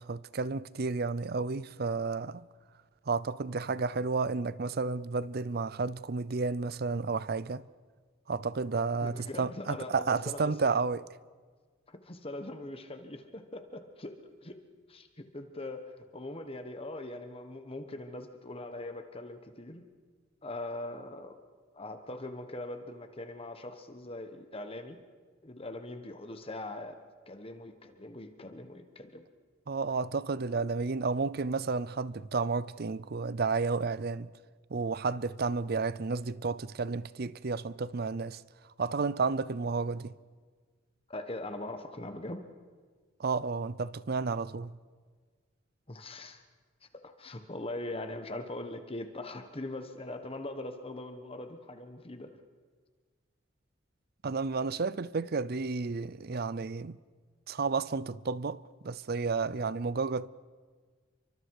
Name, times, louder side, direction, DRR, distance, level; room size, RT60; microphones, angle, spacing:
voice 1, 0.0-2.5 3.1-7.7 8.3-11.0 29.7-34.3 34.7-38.4 38.8-40.1 43.2-44.7 54.2-57.0 57.5-60.3, right 4 dB, 50° right, 0.5 m, -31 dB
voice 2, 9.0-10.7 11.9-14.6 14.9-19.8 20.4-21.4 21.7-25.0 25.4-27.0 27.3-29.2 41.1-42.5 45.9-46.4 46.8-52.3, left 2 dB, 30° left, 1.3 m, -41 dB
29.5 x 24.5 x 4.8 m
head